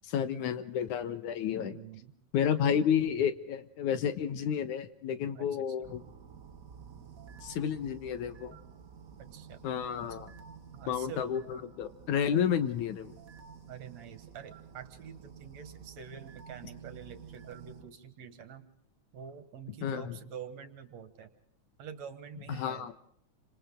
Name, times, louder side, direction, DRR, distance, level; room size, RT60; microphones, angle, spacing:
voice 1, 0.0-1.8 2.3-6.0 7.4-8.5 9.6-10.3 10.9-13.1 19.8-20.2 22.5-22.9, left 8 dB, 75° left, 11 dB, 2.7 m, -31 dB
voice 2, 1.5-2.1 5.3-5.5 5.8-5.9 9.2-9.7 10.7-11.3 12.3-12.4 13.7-18.7 19.1-21.3 21.8-22.9, right 7 dB, 65° right, 11 dB, 2.8 m, -46 dB
sound 1, 5.8-17.9, right 6 dB, 40° right, 1.2 m, -51 dB
29.0 x 26.5 x 3.8 m, 0.65 s
omnidirectional pair, 3.5 m